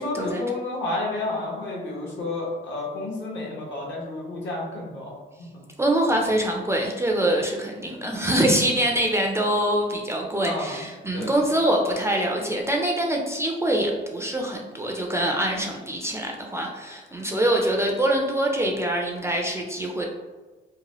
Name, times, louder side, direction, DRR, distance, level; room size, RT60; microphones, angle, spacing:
voice 1, 0.0-5.1 5.4-5.5 10.4-10.7 11.1-11.5, left 2 dB, 65° left, -3 dB, 1.0 m, -30 dB
voice 2, 5.8-20.1, right 1 dB, 15° right, 0 dB, 0.4 m, -24 dB
2.9 x 2.1 x 2.9 m, 1.2 s
cardioid pair, 90°, 20 cm